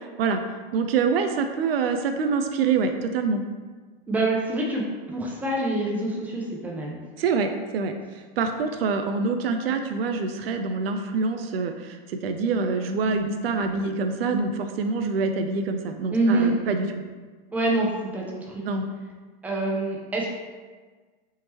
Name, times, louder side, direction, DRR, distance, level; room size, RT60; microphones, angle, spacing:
voice 1, 0.7-3.4 7.2-16.9 18.6-18.9, right 4 dB, 80° right, 6 dB, 0.5 m, -26 dB
voice 2, 4.1-4.8 5.1-7.0 16.1-16.5 17.5-18.6 19.4-20.3, right 2 dB, 5° right, -2 dB, 0.4 m, -25 dB
3.6 x 2.9 x 2.9 m, 1.4 s
hypercardioid pair, 115°, 29 cm